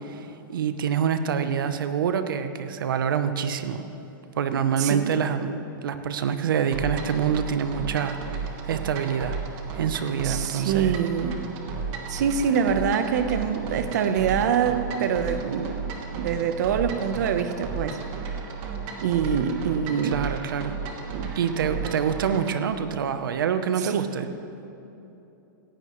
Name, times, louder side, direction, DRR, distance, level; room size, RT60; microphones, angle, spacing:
voice 1, 0.0-3.8 4.4-5.5 5.8-8.2 8.6-9.4 9.7-10.9 20.0-20.7 21.4-24.3, right 7 dB, 85° right, 9 dB, 0.8 m, -26 dB
voice 2, 4.5-5.1 10.2-11.4 12.1-15.7 16.2-18.0 19.0-20.2 21.1-21.3 21.6-21.9 23.8-24.3, right 7 dB, 55° right, 9 dB, 0.9 m, -25 dB
sound 1, 6.7-22.6, right 5 dB, 30° right, 1.3 m, -34 dB
18.5 x 15.5 x 3.1 m, 2.9 s
supercardioid pair, 175°, 11 cm